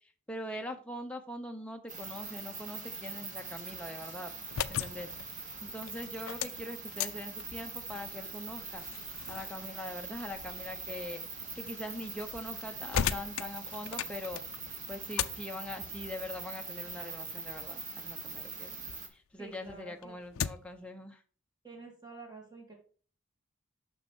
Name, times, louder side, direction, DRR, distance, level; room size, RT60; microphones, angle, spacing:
voice 1, 0.3-4.3 4.7-8.9 9.3-14.4 14.9-18.8 19.1-21.2, left 1 dB, 5° left, 4 dB, 0.8 m, -42 dB
sound 1, 1.9-19.1, right 4 dB, 40° right, 1.5 m, -43 dB
sound 2, 4.4-19.0 19.4-20.8, left 9 dB, 85° left, 0.4 m, -40 dB
voice 2, 19.4-20.2 21.6-22.7, right 3 dB, 20° right, 0 dB, 2.4 m, -49 dB
6.3 x 6.1 x 4.5 m, 0.40 s
head